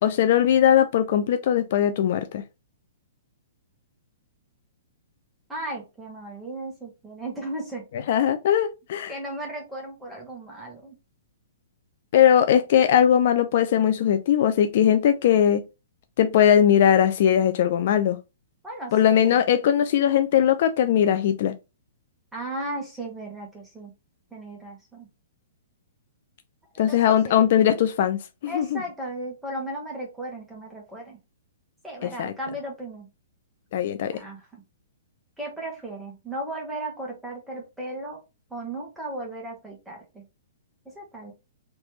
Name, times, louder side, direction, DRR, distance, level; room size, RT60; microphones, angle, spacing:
voice 1, 0.0-2.4 8.1-9.1 12.1-15.6 16.2-18.2 18.9-21.5 26.8-28.8 32.0-32.3 33.7-34.2, left 9 dB, 50° left, 0.4 m, -20 dB
voice 2, 5.5-7.9 9.1-11.0 18.6-19.4 22.3-23.9 24.3-25.1 26.9-27.4 28.5-31.2 31.8-33.1 34.1-34.6 35.4-38.2 38.5-40.2 40.8-41.3, right 1 dB, 5° right, 1.3 m, -36 dB
3.2 x 3.0 x 3.1 m
hypercardioid pair, 155°, 0 cm